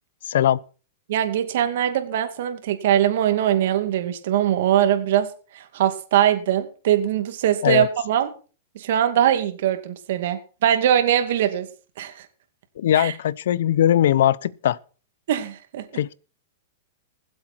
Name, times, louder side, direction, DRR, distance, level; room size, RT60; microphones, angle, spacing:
voice 1, 0.3-0.6 7.6-7.9 12.8-14.8 15.9-16.1, left 11 dB, 75° left, 0.6 m, -20 dB
voice 2, 1.1-5.3 5.5-8.3 8.8-11.7 12.0-12.3 12.9-13.1 15.3-15.8, right 10 dB, 65° right, 2.3 m, -21 dB
20.0 x 8.0 x 4.5 m
hypercardioid pair, 140°, 0 cm